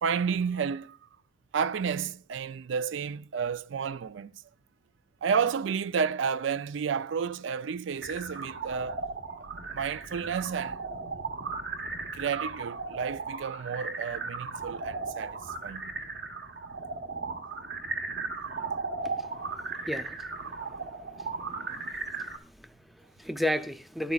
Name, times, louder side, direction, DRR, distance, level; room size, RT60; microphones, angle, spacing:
voice 1, 0.0-1.0 1.5-4.3 5.2-9.0 9.4-10.8 12.1-16.0, right 6 dB, 80° right, 0.4 m, -31 dB
sound 1, 8.0-22.4, right 3 dB, 60° right, 1.2 m, -36 dB
voice 2, 19.0-20.8 21.2-21.3 22.2-24.1, left 1 dB, ahead, 0.6 m, -35 dB
13.5 x 12.0 x 2.4 m
head